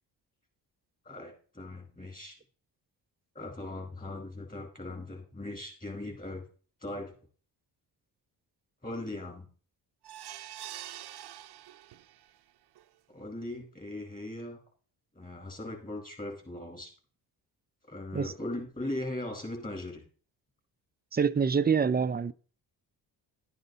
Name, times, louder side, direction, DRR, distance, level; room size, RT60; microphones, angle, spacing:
voice 1, 1.1-2.4 3.4-6.5 6.8-7.1 8.8-9.5 13.1-14.6 15.1-16.9 17.9-20.0, left 1 dB, 20° left, 5.2 m, -39 dB
sound 1, 10.0-12.3 12.8-12.9 13.2-13.3, right 12 dB, 65° right, 0.8 m, -45 dB
voice 2, 21.1-22.3, right 6 dB, 20° right, 0.6 m, -26 dB
12.0 x 8.9 x 4.1 m
cardioid pair, 70°, 43 cm